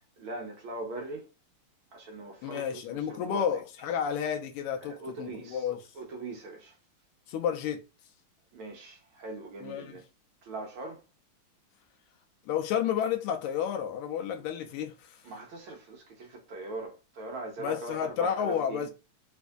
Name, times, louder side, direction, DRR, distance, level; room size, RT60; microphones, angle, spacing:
voice 1, 0.2-1.2 1.9-3.6 4.8-5.6 5.9-6.8 8.5-10.0 10.4-11.0 15.2-18.9, right 2 dB, 75° right, 1.7 m, -41 dB
voice 2, 2.4-5.9 7.3-7.8 9.6-10.0 12.4-15.3 17.6-18.9, left 8 dB, 90° left, 1.5 m, -31 dB
4.2 x 2.6 x 2.3 m
omnidirectional pair, 2.4 m